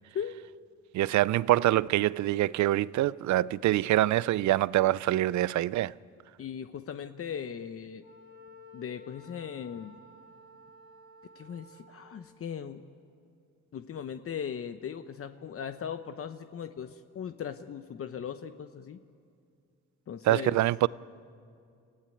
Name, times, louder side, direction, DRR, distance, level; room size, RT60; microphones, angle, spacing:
voice 1, 0.9-5.9 20.2-20.9, right 15 dB, 70° right, 0.5 m, -25 dB
voice 2, 6.4-8.0 8.7-10.0 11.3-12.8 13.7-19.0 20.1-20.6, left 8 dB, 50° left, 0.9 m, -38 dB
Wind instrument woodwind instrument, 8.0-12.2, left 2 dB, 70° left, 7.3 m, -53 dB
29.5 x 15.0 x 9.1 m
cardioid pair, 90°, 30 cm